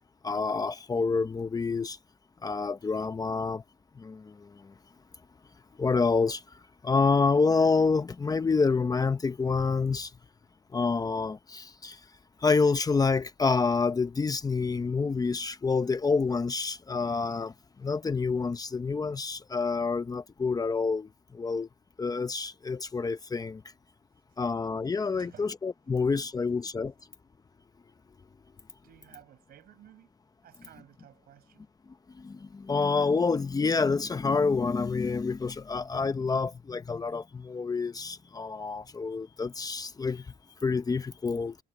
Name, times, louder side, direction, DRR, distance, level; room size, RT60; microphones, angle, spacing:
voice 1, 0.2-2.0 2.4-3.6 4.0-4.7 5.8-10.1 10.7-12.0 12.4-17.5 17.8-21.7 22.0-23.6 24.4-26.9 32.2-40.3 40.6-41.6, left 4 dB, 20° left, 0.9 m, -28 dB
voice 2, 25.1-25.5 26.1-26.5 28.8-30.1 30.4-31.7, right 12 dB, 65° right, 5.9 m, -55 dB
cardioid pair, 110°, 17 cm